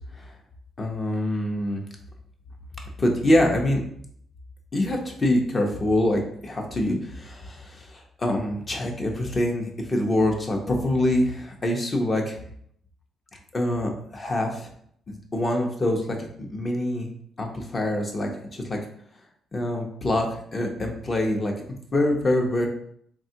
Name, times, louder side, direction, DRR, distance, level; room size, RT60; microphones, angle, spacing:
voice 1, 0.8-1.8 3.0-3.8 4.7-12.4 13.5-14.7 15.1-16.2 16.5-17.1 17.4-18.8 19.5-20.3 20.5-21.5 21.9-22.7, left 1 dB, 30° left, 2 dB, 0.7 m, -25 dB
3.5 x 2.3 x 2.7 m, 0.65 s
cardioid pair, 90°, 0 cm